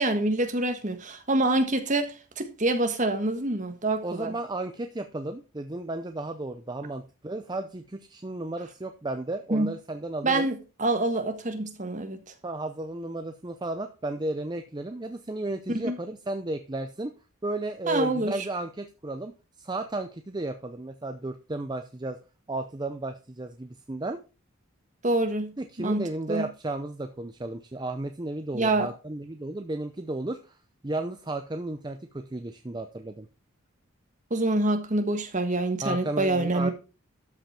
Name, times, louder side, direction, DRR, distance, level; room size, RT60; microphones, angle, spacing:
voice 1, 0.0-4.3 9.5-9.7 10.2-12.2 15.7-16.0 17.9-18.3 25.0-25.5 25.8-26.4 28.5-28.9 34.3-36.7, right 2 dB, 35° right, 1.5 m, -26 dB
voice 2, 4.0-10.5 12.4-17.1 17.4-22.2 22.5-24.2 25.6-30.6 30.8-33.3 35.8-36.7, right 2 dB, 20° right, 0.6 m, -33 dB
13.0 x 5.8 x 4.3 m
head